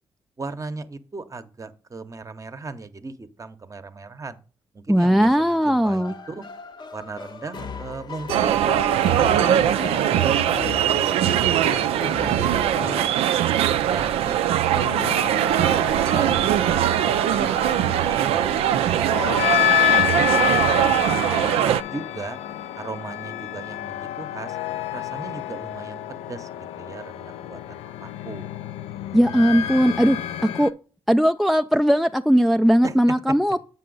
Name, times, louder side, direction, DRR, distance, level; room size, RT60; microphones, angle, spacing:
voice 1, 0.4-4.4 4.7-6.5 6.9-9.1 9.5-10.4 11.2-13.1 13.5-17.0 17.4-17.5 18.0-19.4 19.8-21.2 21.6-22.4 22.8-24.6 24.9-28.5 29.6-30.0 32.8-32.9, right 3 dB, 30° right, 10 dB, 0.8 m, -38 dB
voice 2, 4.9-6.1 29.1-30.2 30.5-30.7 31.1-33.6, equal, ahead, 7 dB, 0.3 m, -18 dB
sound 1, 5.9-13.1, left 5 dB, 45° left, 0.7 m, -35 dB
sound 2, 8.3-21.8, right 11 dB, 75° right, 0.4 m, -21 dB
sound 3, 14.7-30.7, left 14 dB, 75° left, 0.4 m, -28 dB
7.5 x 5.5 x 3.9 m, 0.37 s
hypercardioid pair, 45°, 10 cm